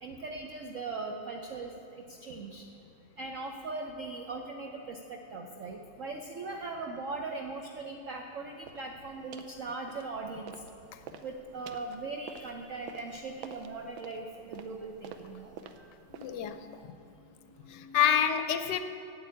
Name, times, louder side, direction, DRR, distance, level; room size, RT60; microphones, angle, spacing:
voice 1, 0.0-1.7 2.2-2.6 3.2-10.5 11.2-15.5 15.8-15.9, right 3 dB, 60° right, 2 dB, 0.8 m, -39 dB
sound 1, 8.7-8.9 9.3-9.6 9.9-10.7 11.0-16.6, right 6 dB, 90° right, 1.4 m, -48 dB
voice 2, 16.1-16.7 17.6-18.8, left 9 dB, 75° left, 10 dB, 1.1 m, -28 dB
8.7 x 8.6 x 8.3 m, 2.6 s
omnidirectional pair, 2.1 m